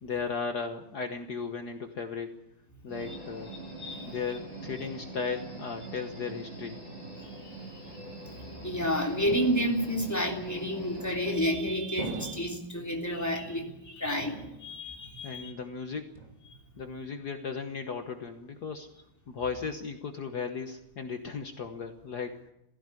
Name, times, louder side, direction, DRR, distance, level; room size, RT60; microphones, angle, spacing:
voice 1, 0.0-2.3 2.8-3.5 4.1-6.8 15.2-16.0 16.8-18.9 19.3-22.5, left 5 dB, 55° left, 6 dB, 1.6 m, -36 dB
sound 1, 2.9-11.4, right 2 dB, 55° right, 8.2 m, -43 dB
voice 2, 3.8-4.1 7.2-7.8 8.6-15.5, equal, 5° left, 1 dB, 3.3 m, -31 dB
sound 2, 9.3-10.1 10.9-11.5 12.0-12.8 13.3-13.9 14.2-15.0 15.3-15.7 16.1-16.7, right 3 dB, 15° right, 2.7 m, -42 dB
17.0 x 15.5 x 9.8 m, 0.84 s
omnidirectional pair, 2.4 m